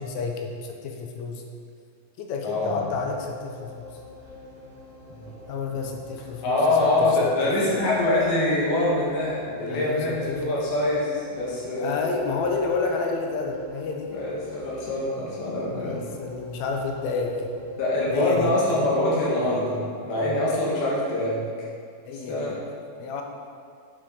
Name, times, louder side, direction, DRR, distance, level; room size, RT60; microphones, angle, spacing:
voice 1, 0.0-1.4 2.2-3.9 5.5-7.5 9.7-10.6 11.8-14.1 15.7-17.5 18.1-18.5 22.1-22.6 23.0-23.2, left 4 dB, 70° left, 2 dB, 1.8 m, -30 dB
voice 2, 2.4-2.8 5.1-5.2 6.4-12.1 14.1-16.0 17.8-21.7 22.3-22.6, left 2 dB, 90° left, -5 dB, 3.9 m, -24 dB
sound 1, 2.8-18.2, left 3 dB, 20° left, 1.0 m, -45 dB
8.8 x 8.1 x 4.7 m, 2.2 s
omnidirectional pair, 4.2 m